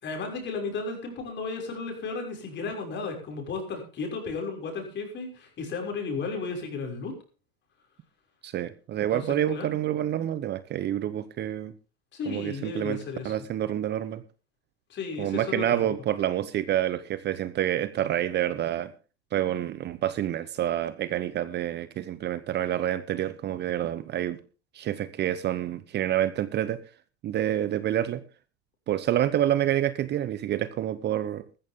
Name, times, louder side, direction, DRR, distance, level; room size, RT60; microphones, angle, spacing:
voice 1, 0.0-7.1 9.1-9.9 12.1-13.3 14.9-15.8, left 4 dB, 35° left, 6.3 m, -34 dB
voice 2, 8.4-11.7 12.3-13.0 13.2-14.2 15.2-18.9 19.3-24.4 24.7-26.8 27.2-28.2 28.9-31.5, right 11 dB, 35° right, 0.9 m, -28 dB
14.5 x 14.0 x 3.7 m
hypercardioid pair, 110°, 31 cm